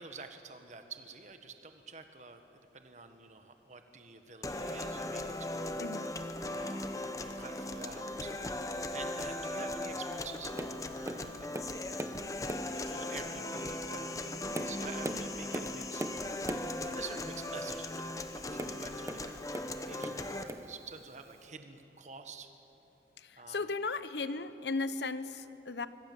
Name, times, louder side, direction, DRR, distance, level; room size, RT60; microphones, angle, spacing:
voice 1, 0.0-5.7 6.5-11.5 12.4-16.0 16.4-18.0 18.3-19.3 19.8-22.5 23.4-23.7, right 4 dB, 40° right, 7 dB, 1.4 m, -48 dB
sound 1, 4.4-20.4, left 1 dB, 20° left, 1.0 m, -38 dB
voice 2, 5.8-6.1 23.2-25.9, left 3 dB, 80° left, 13 dB, 0.9 m, -36 dB
Tap, 10.6-10.8 11.0-12.2 12.5-12.8 13.5-13.6 14.2-16.8 18.5-19.7 20.0-20.7 21.5-21.6, right 1 dB, 15° right, 0.9 m, -40 dB
25.5 x 20.5 x 7.7 m, 3.0 s
head